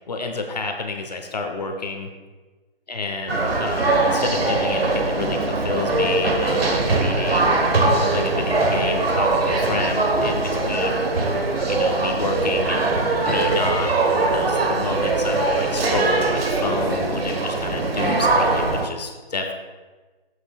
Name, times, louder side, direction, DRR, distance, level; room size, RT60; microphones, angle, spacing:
voice 1, 0.1-2.1 2.9-7.7 8.1-11.0 11.7-12.9 13.3-19.5, left 3 dB, 45° left, 4 dB, 0.9 m, -29 dB
sound 1, 3.3-18.9, right 3 dB, 85° right, 1.2 m, -21 dB
13.0 x 7.9 x 2.3 m, 1.3 s
hypercardioid pair, 165°, 29 cm